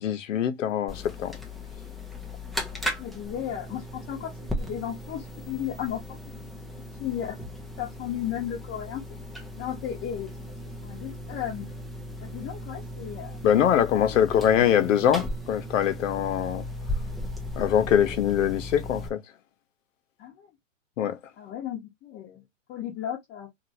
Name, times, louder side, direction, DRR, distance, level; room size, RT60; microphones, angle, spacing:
voice 1, 0.0-1.3 13.4-16.6 17.6-19.2 21.0-21.2, left 9 dB, 75° left, 0.9 m, -23 dB
sound 1, 0.9-19.1, left 1 dB, ahead, 0.5 m, -37 dB
voice 2, 3.0-6.2 7.0-7.4 7.8-9.0 9.6-10.3 10.8-11.7 12.2-13.4 20.2-20.5 21.4-22.4 22.7-23.5, left 10 dB, 25° left, 1.0 m, -34 dB
2.9 x 2.5 x 2.6 m
hypercardioid pair, 130°, 39 cm